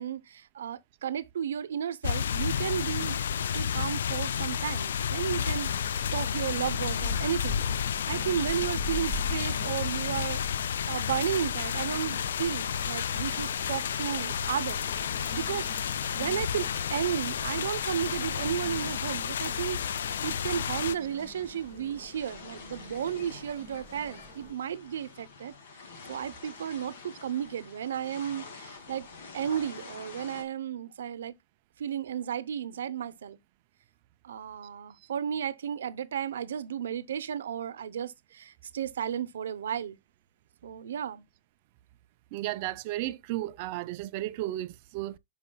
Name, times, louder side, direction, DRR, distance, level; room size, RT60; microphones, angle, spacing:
voice 1, 0.0-3.2 3.5-7.6 8.0-10.4 10.9-14.8 15.3-25.5 26.1-29.1 29.3-31.3 31.8-33.4 34.2-40.0 40.6-41.3, right 9 dB, 80° right, 0.7 m, -33 dB
sound 1, 2.0-20.9, left 8 dB, 75° left, 0.3 m, -31 dB
sound 2, 5.3-24.5, equal, 35° left, 5.2 m, -45 dB
sound 3, 14.6-30.4, left 4 dB, 55° left, 2.2 m, -49 dB
voice 2, 42.3-45.2, right 15 dB, 35° right, 0.4 m, -34 dB
10.5 x 5.0 x 2.3 m
supercardioid pair, 175°, 0 cm